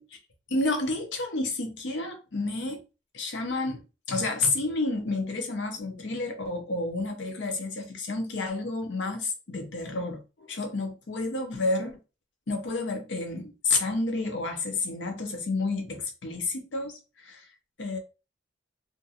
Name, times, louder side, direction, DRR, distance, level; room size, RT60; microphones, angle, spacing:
voice 1, 0.5-2.8 3.1-12.0 12.5-17.5 17.8-18.0, left 3 dB, 80° left, 0.7 m, -30 dB
2.5 x 2.5 x 2.7 m
head